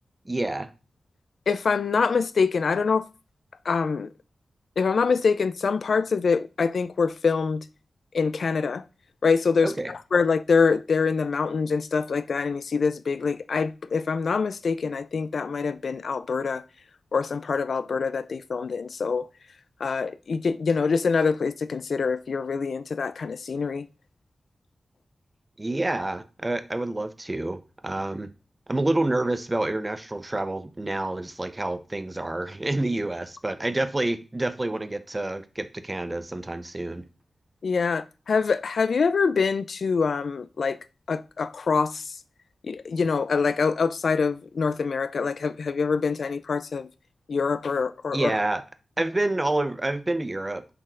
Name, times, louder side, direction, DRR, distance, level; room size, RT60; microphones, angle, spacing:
voice 1, 0.3-0.7 9.6-9.9 25.6-28.3 28.7-37.0 48.1-48.6 49.0-50.8, right 2 dB, 20° right, 0.5 m, -28 dB
voice 2, 1.5-3.1 3.7-4.1 4.8-7.6 8.1-8.8 9.2-16.6 17.1-19.3 19.8-23.9 37.6-40.8 41.1-42.2 42.6-46.9 47.3-48.3, left 5 dB, 60° left, 0.3 m, -25 dB
6.0 x 4.2 x 3.7 m
wide cardioid pair, 165°, 0 cm